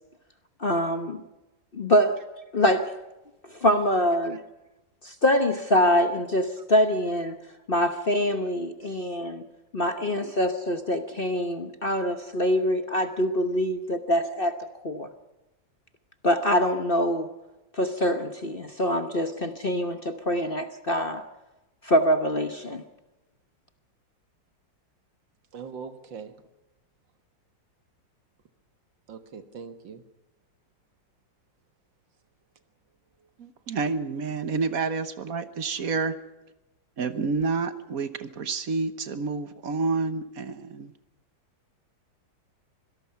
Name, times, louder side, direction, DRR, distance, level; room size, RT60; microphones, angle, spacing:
voice 1, 0.6-1.2 1.7-2.2 2.5-2.9 3.5-4.4 5.0-7.4 7.7-9.4 9.7-14.6 14.8-15.1 16.2-17.3 17.7-21.2 21.8-22.8, equal, 35° left, 7 dB, 1.0 m, -24 dB
voice 2, 25.5-26.3 29.1-30.0 35.8-35.9, right 6 dB, 75° right, 9 dB, 2.2 m, -42 dB
voice 3, 33.4-36.2 37.0-40.9, right 4 dB, 55° right, 11 dB, 1.4 m, -29 dB
25.0 x 18.0 x 5.8 m, 1.0 s
omnidirectional pair, 2.0 m